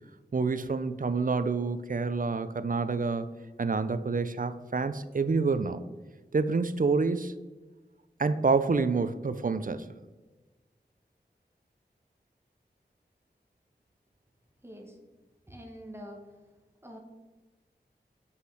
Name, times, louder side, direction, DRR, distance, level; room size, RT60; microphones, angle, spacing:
voice 1, 0.3-3.3 3.6-5.8 6.3-7.4 8.2-9.9, right 4 dB, 50° right, 12 dB, 0.5 m, -28 dB
voice 2, 14.6-15.0 15.5-16.3 16.8-17.0, equal, 15° right, 1 dB, 1.6 m, -45 dB
8.2 x 5.5 x 4.9 m, 1.2 s
wide cardioid pair, 60°, 18 cm